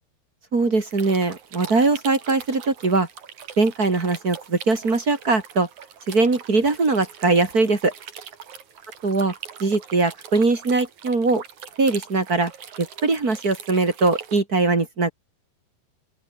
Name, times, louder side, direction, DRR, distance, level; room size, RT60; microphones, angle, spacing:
voice 1, 0.5-3.1 3.6-5.7 6.1-7.9 9.0-9.3 9.6-11.4 11.8-12.5 12.8-15.1, right 3 dB, 25° right, 2.7 m, -21 dB
sound 1, 0.9-14.4, right 8 dB, 55° right, 3.7 m, -42 dB
open air
omnidirectional pair, 4.4 m